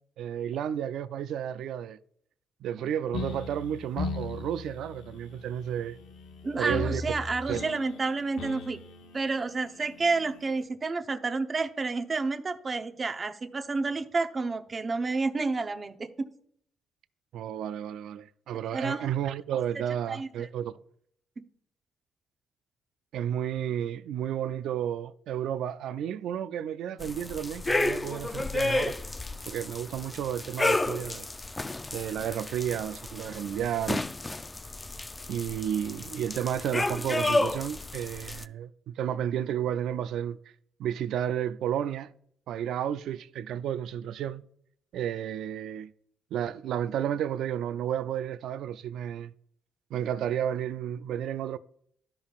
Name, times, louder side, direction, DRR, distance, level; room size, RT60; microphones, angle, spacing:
voice 1, 0.2-2.0 2.6-6.0 6.6-7.0 7.5-7.7 17.3-20.8 23.1-28.9 29.5-31.3 31.9-34.0 35.3-40.4 40.8-42.1 42.5-44.4 44.9-45.9 46.3-49.3 49.9-51.6, right 10 dB, 80° right, 0.3 m, -32 dB
sound 1, 3.1-10.6, left 4 dB, 85° left, 0.9 m, -39 dB
voice 2, 6.4-8.8 9.1-16.3 18.7-19.1 20.1-20.5 21.4-21.5, right 3 dB, 35° right, 0.8 m, -30 dB
sound 2, 27.0-38.4, left 2 dB, 20° left, 0.4 m, -32 dB
13.0 x 5.2 x 2.4 m
cardioid pair, 90°, 0 cm